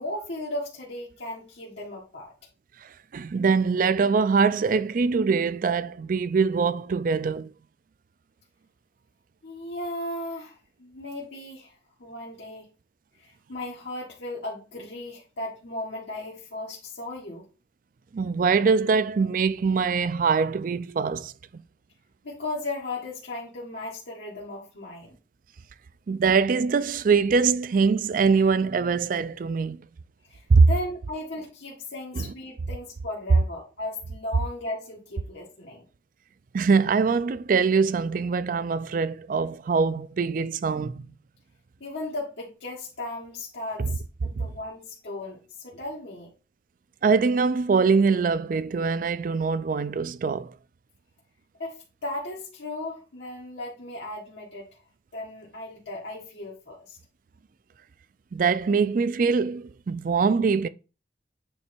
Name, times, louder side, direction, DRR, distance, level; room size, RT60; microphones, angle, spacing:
voice 1, 0.0-2.3 9.4-11.7 12.0-12.7 13.2-17.4 22.2-25.2 30.3-35.8 41.8-46.3 51.6-54.8 55.1-57.0, left 1 dB, 85° left, 1.7 m, -36 dB
voice 2, 2.8-7.5 18.1-21.3 26.1-29.8 30.5-30.7 32.1-32.3 36.5-41.1 43.8-43.9 44.3-44.5 47.0-50.5 58.3-60.7, right 5 dB, 50° right, 0.4 m, -23 dB
8.8 x 3.3 x 4.5 m
head